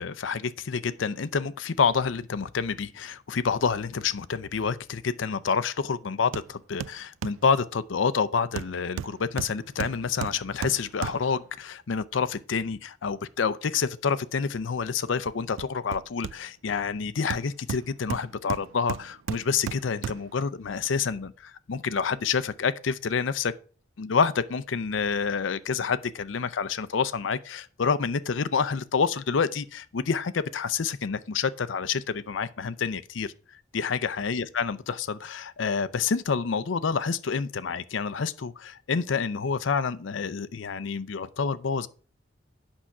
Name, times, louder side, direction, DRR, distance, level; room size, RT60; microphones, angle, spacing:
voice 1, 0.0-23.5 24.0-33.3 33.7-41.9, left 5 dB, 75° left, 0.5 m, -28 dB
Hammer, 6.3-6.5 6.8-7.5 8.6-11.5 15.2-16.7 17.3-20.4 20.8-20.9, right 8 dB, 85° right, 0.3 m, -36 dB
8.7 x 5.6 x 5.9 m
head